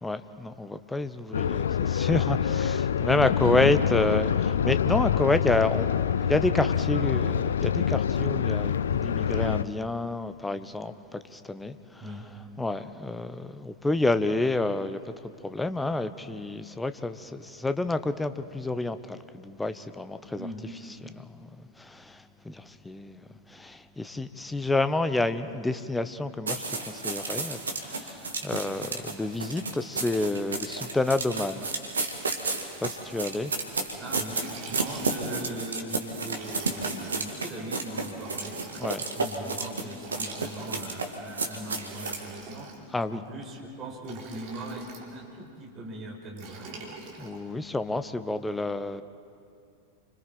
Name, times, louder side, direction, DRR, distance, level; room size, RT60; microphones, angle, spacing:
voice 1, 0.0-12.0 12.6-15.0 15.4-20.5 21.0-31.7 32.8-33.5 38.8-39.0 42.9-43.2 47.2-49.0, left 2 dB, 10° left, 11 dB, 0.9 m, -29 dB
sound 1, 1.3-9.6, left 8 dB, 65° left, 0.5 m, -26 dB
voice 2, 3.3-3.7 12.0-12.3 20.4-20.7 34.0-34.4 34.7-38.6 39.1-42.7 43.1-46.8, right 1 dB, 25° right, -1 dB, 5.0 m, -40 dB
sound 2, 26.5-42.2, right 3 dB, 75° right, 2.0 m, -32 dB
Liquid, 34.0-35.4 36.2-37.3 38.1-39.0 40.0-41.1 41.8-43.0 44.0-45.1 46.4-47.4, right 3 dB, 45° right, 3.6 m, -45 dB
29.5 x 25.5 x 4.6 m, 2.4 s
figure-of-eight pair, 90°, 0 cm